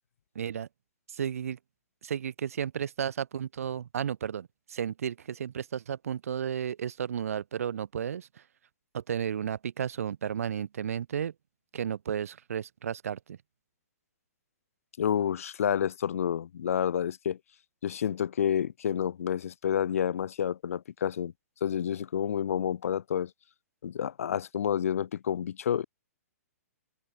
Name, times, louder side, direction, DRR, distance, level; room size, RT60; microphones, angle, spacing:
voice 1, 0.3-0.7 1.1-1.6 2.0-8.4 8.9-11.3 11.7-13.4, right 8 dB, 65° right, 1.5 m, -33 dB
voice 2, 15.0-17.4 17.8-21.3 21.6-23.3 23.8-25.8, left 9 dB, 65° left, 0.7 m, -29 dB
hypercardioid pair, 170°, 8 cm